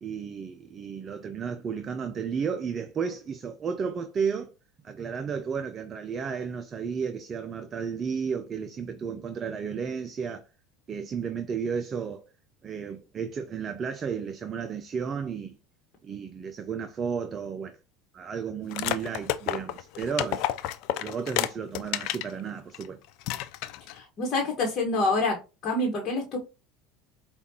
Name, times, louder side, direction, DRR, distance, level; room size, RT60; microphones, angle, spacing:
voice 1, 0.0-4.5 4.8-10.4 10.9-12.3 12.6-15.6 16.0-17.8 18.1-20.5 21.0-23.0, right 6 dB, 35° right, 0.4 m, -33 dB
sound 1, 18.7-22.3 22.7-22.9 23.2-24.0, left 13 dB, 65° left, 0.3 m, -30 dB
voice 2, 23.9-26.4, left 2 dB, 45° left, 1.2 m, -27 dB
5.0 x 2.4 x 2.7 m
hypercardioid pair, 95°, 0 cm